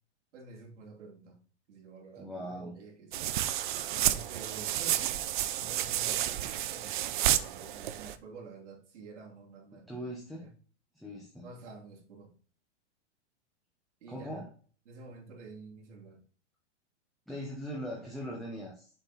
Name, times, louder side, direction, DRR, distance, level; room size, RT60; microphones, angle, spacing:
voice 1, 0.3-1.4 1.7-3.3 3.9-5.2 5.5-10.1 10.4-10.5 11.4-12.3 14.0-14.4 14.9-16.2, right 4 dB, 85° right, 2.7 m, -49 dB
voice 2, 2.2-2.7 9.7-10.5 10.9-11.5 14.1-14.5 17.3-18.9, equal, ahead, 0.7 m, -40 dB
sound 1, 3.1-8.2, right 12 dB, 45° right, 0.5 m, -31 dB
6.9 x 4.4 x 4.1 m
supercardioid pair, 165°, 35 cm